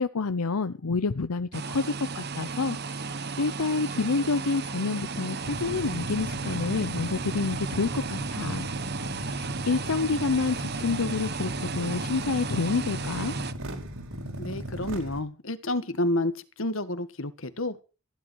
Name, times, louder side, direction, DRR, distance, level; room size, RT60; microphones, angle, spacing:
voice 1, 0.0-8.7 9.2-13.3, left 4 dB, 85° left, 13 dB, 0.7 m, -28 dB
sound 1, 1.5-13.5, right 4 dB, 45° right, 1.1 m, -34 dB
sound 2, 5.4-15.2, equal, 70° right, 4.8 m, -36 dB
voice 2, 14.4-16.3 16.6-17.8, left 1 dB, 65° left, 13 dB, 1.5 m, -29 dB
15.0 x 11.0 x 6.2 m, 0.34 s
head